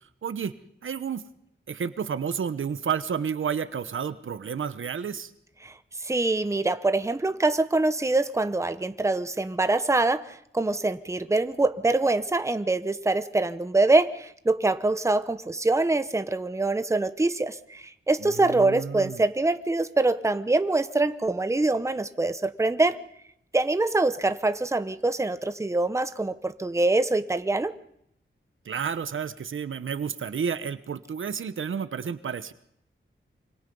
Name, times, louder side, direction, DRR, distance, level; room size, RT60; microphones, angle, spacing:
voice 1, 0.2-0.5 0.8-1.2 1.7-5.3 18.2-19.2 28.6-32.5, right 7 dB, 85° right, 12 dB, 1.0 m, -31 dB
voice 2, 6.0-23.0 23.5-27.7, right 2 dB, 15° right, 11 dB, 0.9 m, -24 dB
26.0 x 25.0 x 5.4 m, 0.76 s
wide cardioid pair, 120°, 20 cm